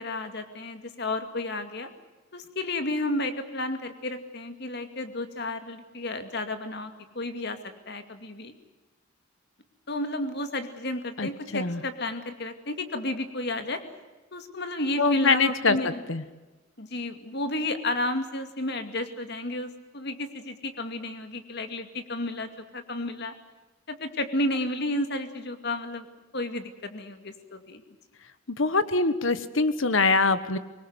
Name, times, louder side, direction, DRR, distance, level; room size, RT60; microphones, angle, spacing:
voice 1, 0.0-1.9 2.3-7.6 7.9-8.5 9.9-13.8 14.3-16.0 16.8-23.3 23.9-26.1 26.3-27.8, left 1 dB, 55° left, 8 dB, 2.4 m, -32 dB
voice 2, 11.2-11.8 15.0-16.2 28.5-30.6, left 3 dB, 75° left, 13 dB, 1.3 m, -24 dB
24.5 x 21.0 x 8.0 m, 1.2 s
head